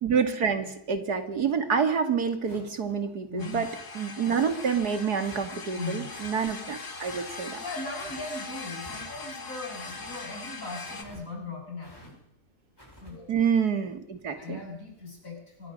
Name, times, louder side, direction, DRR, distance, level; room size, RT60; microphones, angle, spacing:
voice 1, 0.0-3.7 3.9-7.6 13.3-14.6, right 6 dB, 80° right, 8 dB, 2.8 m, -27 dB
sound 1, 2.5-2.9 3.5-3.8 4.4-4.6 5.2-5.5 6.1-6.3 7.0-7.2 7.9-8.3 8.9-9.3 9.9-10.2 10.8-11.2 11.8-12.1 12.8-13.1, equal, 15° left, 7.6 m, -50 dB
voice 2, 3.3-3.6 5.8-6.1 7.6-12.2 13.0-13.3 13.8-13.9 14.3-15.7, left 3 dB, 55° left, 0 dB, 8.0 m, -39 dB
sound 2, 3.4-11.0, left 4 dB, 90° left, 3.1 m, -40 dB
24.5 x 21.5 x 6.6 m, 0.75 s
omnidirectional pair, 1.7 m